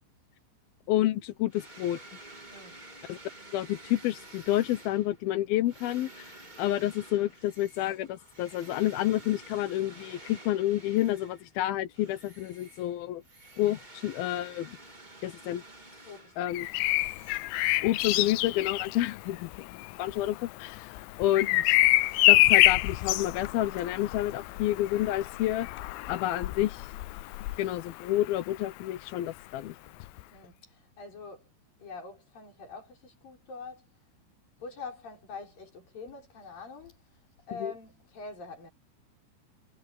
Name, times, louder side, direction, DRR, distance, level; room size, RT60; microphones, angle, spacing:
voice 1, 0.9-2.0 3.1-3.2 3.5-13.2 13.6-14.8 15.2-15.6 16.4-16.7 17.8-21.8 22.3-25.7 26.1-26.9 27.6-29.7 37.6-37.7, left 14 dB, 70° left, 2.5 m, -29 dB
sound 1, 1.5-11.6 11.9-17.9, right 2 dB, 15° right, 1.5 m, -51 dB
voice 2, 2.5-2.8 16.0-16.5 21.7-21.8 27.5-27.7 30.3-31.5 31.8-33.9 34.6-37.0 37.5-38.7, left 4 dB, 50° left, 7.6 m, -45 dB
Bird vocalization bird call bird song, 16.5-28.3 30.0-30.2, left 18 dB, 85° left, 2.9 m, -27 dB
omnidirectional pair, 5.2 m